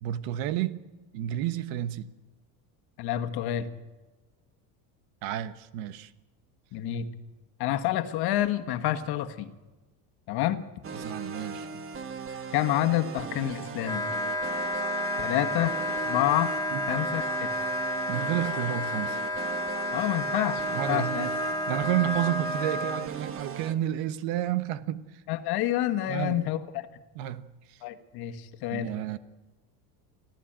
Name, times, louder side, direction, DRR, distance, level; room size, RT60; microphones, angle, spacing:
voice 1, 0.0-0.9 1.1-2.1 5.2-6.1 10.9-11.8 16.7-16.9 18.1-19.2 20.7-21.3 21.7-25.1 26.1-26.4 27.1-27.8 28.7-29.2, right 13 dB, 75° right, 13 dB, 1.3 m, -31 dB
voice 2, 3.0-3.7 6.7-7.1 7.6-9.5 10.3-10.6 12.5-14.0 15.2-15.8 16.0-16.5 16.9-17.5 19.9-21.3 25.3-26.9 27.8-28.9, left 13 dB, 55° left, 9 dB, 1.6 m, -28 dB
sound 1, 10.8-23.7, right 5 dB, 30° right, 1.4 m, -39 dB
Wind instrument woodwind instrument, 13.8-23.1, left 1 dB, 10° left, 1.1 m, -31 dB
25.0 x 15.0 x 8.9 m, 1.2 s
cardioid pair, 140°, 45 cm